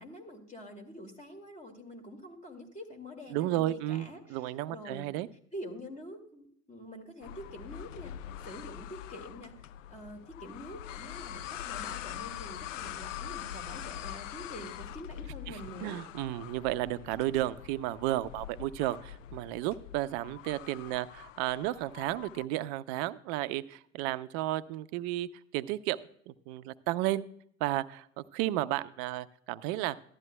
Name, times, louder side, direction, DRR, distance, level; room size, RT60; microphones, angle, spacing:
voice 1, 0.0-5.1 5.5-8.1 8.4-9.5 9.9-16.1, equal, 20° left, 3 dB, 2.3 m, -46 dB
voice 2, 3.3-5.3 15.5-25.3 25.5-26.0 26.3-27.3 27.6-30.0, right 15 dB, 60° right, 14 dB, 0.6 m, -33 dB
sound 1, 7.2-22.5, left 11 dB, 85° left, 0.5 m, -44 dB
15.0 x 12.0 x 2.2 m, 0.64 s
hypercardioid pair, 80°, 37 cm